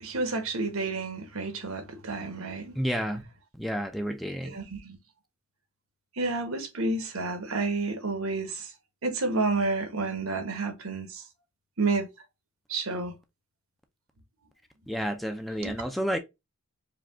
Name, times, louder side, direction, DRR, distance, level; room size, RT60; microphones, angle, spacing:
voice 1, 0.0-2.8 4.4-5.0 6.2-8.7 9.0-11.2 11.8-12.1 12.7-13.1 15.6-15.7, right 3 dB, 75° right, 1.1 m, -30 dB
voice 2, 2.8-3.2 3.6-4.5 14.9-16.2, equal, ahead, 0.4 m, -30 dB
4.9 x 2.3 x 3.5 m
head